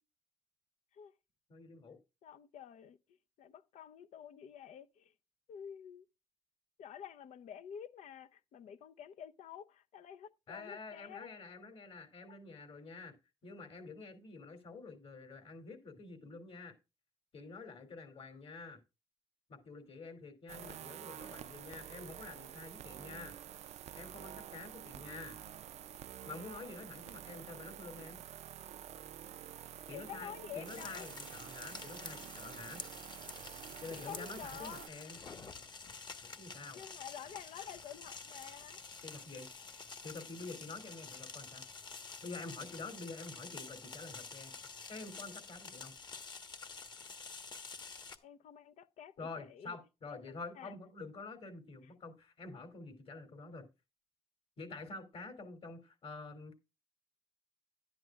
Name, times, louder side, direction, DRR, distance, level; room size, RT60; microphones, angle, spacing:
voice 1, 1.5-2.0 10.5-13.1 13.4-16.7 17.3-18.8 19.5-23.4 23.9-25.4 26.2-28.2 29.9-32.8 33.8-35.2 36.2-36.8 39.0-39.5 40.0-41.7 42.2-44.5 44.9-45.9 49.2-53.7 54.6-56.6, left 3 dB, 55° left, 2.7 m, -48 dB
voice 2, 2.2-3.0 3.4-5.1 5.5-6.0 6.8-11.3 12.3-12.4 29.9-31.1 33.9-34.9 36.7-38.8 48.2-49.8 50.1-50.7 51.8-51.9, left 9 dB, 90° left, 0.7 m, -49 dB
sound 1, 20.5-34.9, right 10 dB, 70° right, 0.4 m, -49 dB
sound 2, 30.7-48.2, left 4 dB, 40° left, 1.1 m, -49 dB
11.0 x 10.5 x 2.4 m
cardioid pair, 125°, 12 cm